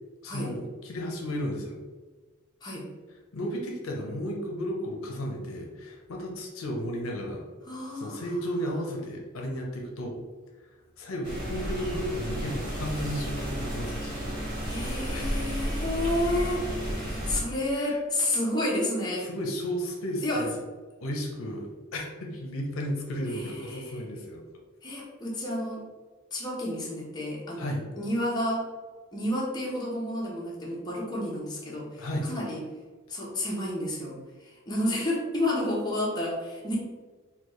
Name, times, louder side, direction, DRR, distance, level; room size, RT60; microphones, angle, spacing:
voice 1, 0.2-1.8 3.3-7.4 8.0-10.2 10.7-14.8 15.1-15.4 17.7-18.0 19.2-20.6 21.0-24.4 27.6-27.8 32.0-32.3, equal, 75° left, 0 dB, 0.6 m, -34 dB
voice 2, 7.7-8.2 14.7-19.3 20.2-20.4 23.3-23.8 24.8-25.8 26.3-27.7 28.0-28.6 29.1-32.6 33.1-36.8, left 1 dB, 20° left, -4 dB, 0.8 m, -30 dB
sound 1, 11.2-17.4, equal, 40° right, 1.4 m, -32 dB
3.9 x 2.3 x 3.0 m, 1.3 s
head